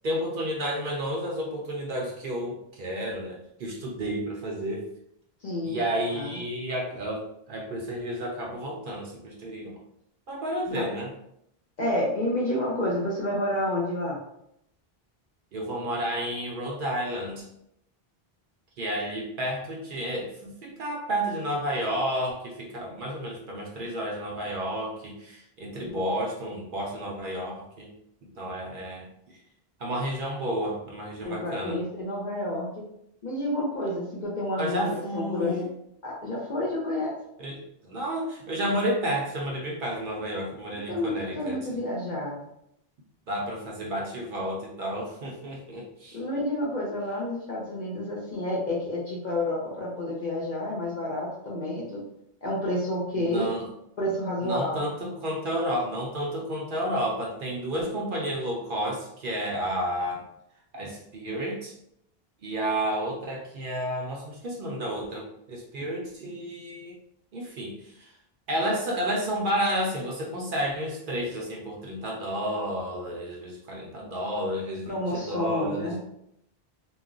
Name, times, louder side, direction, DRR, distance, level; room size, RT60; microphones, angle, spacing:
voice 1, 0.0-4.9 5.6-9.8 10.3-11.1 15.5-17.5 18.8-27.9 28.2-29.1 29.8-31.8 34.6-35.7 37.4-41.7 43.3-46.2 53.2-53.7 54.4-60.3 60.7-61.8 62.4-67.0 67.3-68.2 68.5-75.9, equal, 65° right, -1 dB, 0.7 m, -31 dB
voice 2, 5.4-5.8 6.1-6.3 10.7-10.8 11.8-14.2 25.8-26.0 31.2-32.9 33.2-35.6 36.0-37.1 40.9-42.5 46.1-52.0 52.4-53.5 54.0-54.8 74.9-76.0, left 1 dB, 50° left, -4 dB, 0.7 m, -29 dB
2.3 x 2.0 x 3.6 m, 0.76 s
omnidirectional pair, 1.0 m